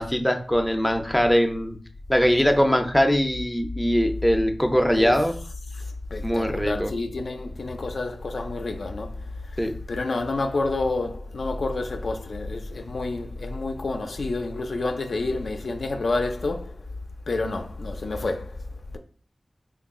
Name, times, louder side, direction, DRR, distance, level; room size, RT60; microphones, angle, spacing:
voice 1, 0.0-1.8 2.1-5.3 6.2-6.9 9.6-9.7, equal, 10° left, 0.4 m, -21 dB
voice 2, 6.1-9.1 9.9-16.7 17.3-18.4, left 2 dB, 75° left, 0.4 m, -28 dB
2.9 x 2.3 x 3.5 m
wide cardioid pair, 95°, 0 cm